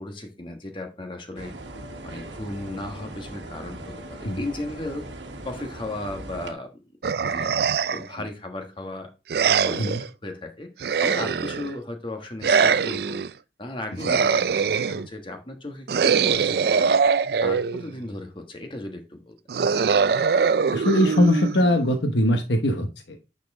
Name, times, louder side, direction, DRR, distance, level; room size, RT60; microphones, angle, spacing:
voice 1, 0.0-1.5 2.0-5.1 5.4-6.8 7.2-9.1 9.6-10.7 11.0-13.2 13.6-16.9 17.4-19.4, left 2 dB, 25° left, 4 dB, 1.3 m, -36 dB
sound 1, 1.4-6.5, right 1 dB, 80° right, 1.3 m, -39 dB
sound 2, 7.0-8.1 9.3-10.1 10.8-11.7 12.4-13.3 14.0-15.1 15.9-17.9 19.5-21.9, right 6 dB, 60° right, 0.4 m, -22 dB
voice 2, 20.7-23.2, left 1 dB, 75° left, 4 dB, 1.0 m, -21 dB
9.2 x 4.3 x 3.6 m, 0.29 s
head